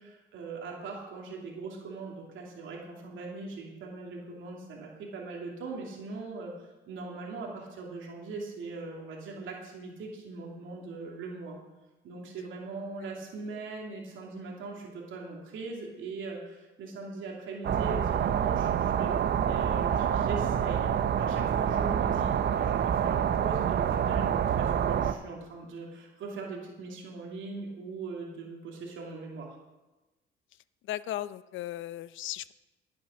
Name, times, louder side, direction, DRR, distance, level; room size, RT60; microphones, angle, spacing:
voice 1, 0.0-11.6 12.0-19.1 19.5-29.6, right 3 dB, 80° right, -1 dB, 2.6 m, -40 dB
sound 1, 17.6-25.1, right 8 dB, 55° right, 0.7 m, -27 dB
voice 2, 30.9-32.5, left 13 dB, 80° left, 16 dB, 0.5 m, -36 dB
15.0 x 7.0 x 6.5 m, 1.1 s
cardioid pair, 90°, 20 cm